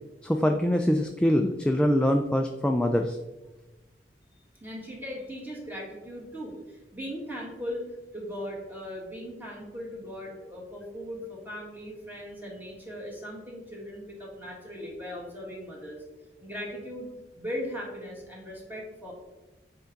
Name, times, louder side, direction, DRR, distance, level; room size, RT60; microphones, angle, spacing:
voice 1, 0.2-3.2, equal, 5° left, 4 dB, 0.3 m, -24 dB
voice 2, 4.6-7.9 8.1-16.0 16.4-17.1 17.3-19.1, equal, 10° right, -3 dB, 1.9 m, -38 dB
8.1 x 4.7 x 3.8 m, 1.1 s
head